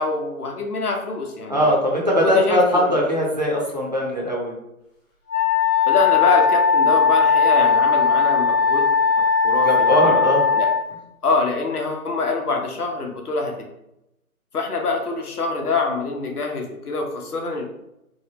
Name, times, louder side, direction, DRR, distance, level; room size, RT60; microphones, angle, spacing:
voice 1, 0.0-1.7 2.2-2.9 5.9-8.9 9.1-10.1 10.5-10.7 11.2-13.5 14.5-17.6, left 3 dB, 90° left, 2 dB, 0.7 m, -25 dB
voice 2, 1.5-4.5 9.6-10.5, equal, 30° right, -4 dB, 0.4 m, -20 dB
Wind instrument woodwind instrument, 5.3-10.8, left 5 dB, 25° left, 0.8 m, -18 dB
2.7 x 2.0 x 2.8 m, 0.86 s
figure-of-eight pair, 150°, 44 cm